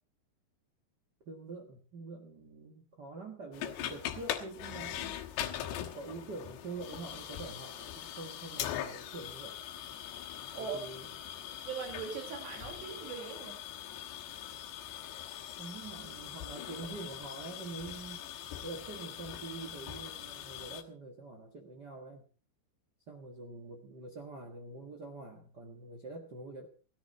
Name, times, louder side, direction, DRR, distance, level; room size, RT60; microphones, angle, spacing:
voice 1, 1.2-5.3 5.8-9.6 10.5-11.1 15.6-18.2 18.6-22.2 23.1-26.7, right 3 dB, 70° right, 3 dB, 0.9 m, -45 dB
sound 1, 3.5-20.8, left 11 dB, 85° left, 3.5 m, -42 dB
voice 2, 10.2-11.1 11.6-13.6, right 6 dB, 90° right, 2 dB, 4.4 m, -41 dB
17.0 x 14.0 x 4.1 m, 0.38 s
omnidirectional pair, 4.8 m